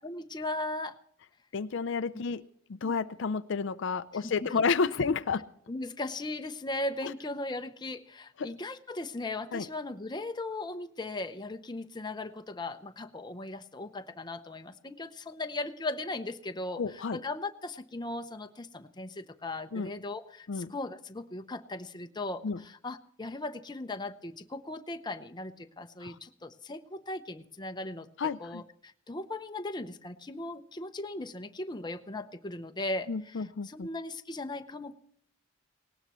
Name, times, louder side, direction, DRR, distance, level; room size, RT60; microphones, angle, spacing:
voice 1, 0.0-1.0 2.8-3.0 4.1-4.6 5.7-35.0, left 2 dB, 20° left, 7 dB, 0.7 m, -38 dB
voice 2, 1.5-2.4 2.7-5.4 7.0-7.1 8.4-8.5 9.5-9.6 16.8-17.2 19.7-19.9 20.5-20.7 22.4-22.6 26.0-26.1 28.2-28.6 33.1-33.9, left 5 dB, 60° left, 12 dB, 0.5 m, -31 dB
19.0 x 18.5 x 3.1 m, 0.64 s
head